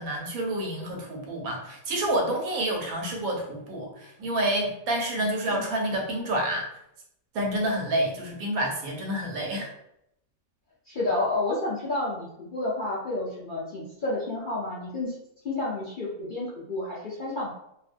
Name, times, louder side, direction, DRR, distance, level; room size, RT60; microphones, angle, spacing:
voice 1, 0.0-6.7 7.3-9.7, right 1 dB, 90° right, 0 dB, 1.1 m, -28 dB
voice 2, 10.9-15.1 15.4-17.5, left 2 dB, 60° left, -7 dB, 0.5 m, -30 dB
2.5 x 2.1 x 2.5 m, 0.79 s
omnidirectional pair, 1.5 m